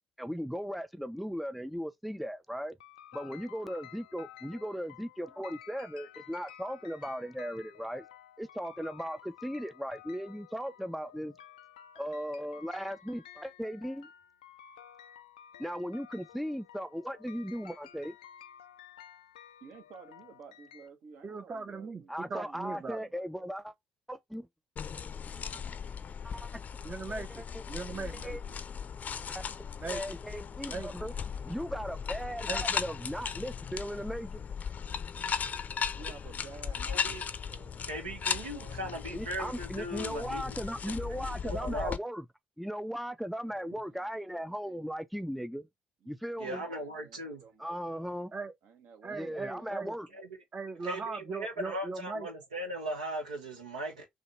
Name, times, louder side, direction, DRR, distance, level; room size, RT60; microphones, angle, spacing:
voice 1, 0.2-2.8 3.1-8.1 8.4-11.4 12.0-14.1 15.6-18.1 22.1-23.7 24.1-24.5 25.4-25.6 26.2-26.6 27.5-27.6 28.2-28.4 29.3-29.4 29.9-31.1 31.4-34.4 39.1-42.2 42.6-45.7 46.1-46.6 47.6-48.3 49.1-50.1, equal, ahead, 0.4 m, -37 dB
sound 1, 2.8-20.9, left 10 dB, 80° left, 0.4 m, -53 dB
voice 2, 19.6-23.4 27.9-28.6 35.9-37.1 37.5-39.2 43.3-44.8 46.0-48.1 48.6-50.0, right 6 dB, 55° right, 1.0 m, -54 dB
voice 3, 21.2-23.0 26.8-28.1 29.8-30.0 30.7-30.9 32.5-32.6 48.3-48.5 49.0-49.9 50.5-52.3, right 4 dB, 30° right, 0.7 m, -39 dB
sound 2, 24.8-42.0, left 6 dB, 40° left, 0.6 m, -37 dB
voice 4, 36.9-37.2 37.8-40.6 41.3-42.0 46.4-47.4 50.1-50.3 50.8-54.0, right 1 dB, 80° right, 1.2 m, -38 dB
6.2 x 2.4 x 3.1 m
figure-of-eight pair, 50°, 4 cm